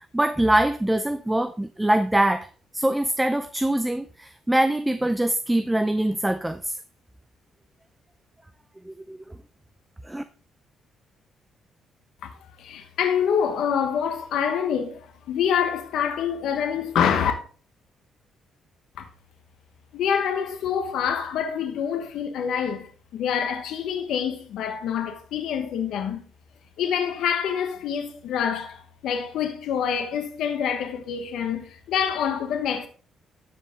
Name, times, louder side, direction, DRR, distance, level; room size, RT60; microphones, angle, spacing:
voice 1, 0.1-2.5 2.7-6.8 8.9-9.2 10.1-10.2, right 1 dB, 10° right, 0.5 m, -23 dB
voice 2, 12.2-17.3 19.0-19.1 19.9-26.2 26.8-32.9, left 8 dB, 80° left, 1.1 m, -26 dB
12.5 x 4.8 x 3.7 m
cardioid pair, 90°, 0 cm